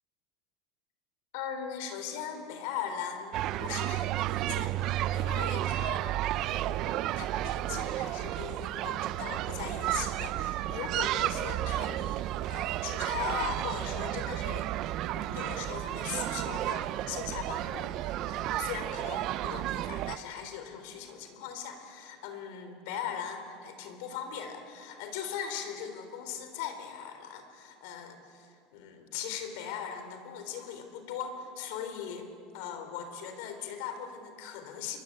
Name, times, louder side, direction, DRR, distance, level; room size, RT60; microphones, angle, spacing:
voice 1, 1.3-6.1 6.5-14.7 15.1-35.0, left 8 dB, 75° left, 8 dB, 3.8 m, -39 dB
sound 1, 3.3-20.2, right 14 dB, 50° right, 0.6 m, -32 dB
28.5 x 22.5 x 8.9 m, 2.6 s
supercardioid pair, 140°, 0 cm